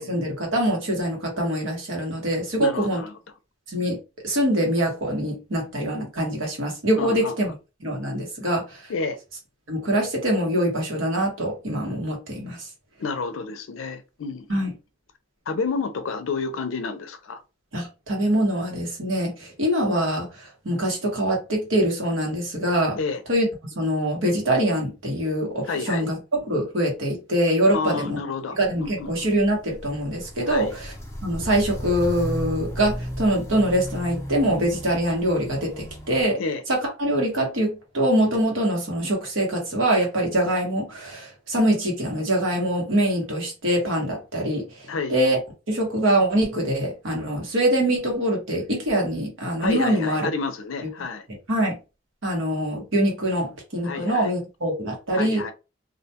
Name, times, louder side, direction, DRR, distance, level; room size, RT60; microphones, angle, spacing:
voice 1, 0.0-3.0 3.7-7.5 7.8-8.9 9.7-12.7 14.5-14.7 17.7-23.0 23.3-26.2 26.4-28.2 28.6-30.9 31.2-36.4 36.7-45.4 45.7-50.3 51.5-51.8 52.2-55.4, right 1 dB, 75° right, 1.1 m, -24 dB
voice 2, 2.6-3.1 7.0-7.3 8.9-9.2 13.0-14.6 15.5-17.4 23.0-23.2 25.7-26.1 27.7-29.3 30.5-30.8 36.4-36.6 44.9-45.2 49.6-51.3 53.8-54.3 55.1-55.5, left 4 dB, 80° left, 0.5 m, -30 dB
Walk footsteps, 28.6-36.3, equal, 15° left, 0.6 m, -35 dB
2.4 x 2.2 x 2.7 m
head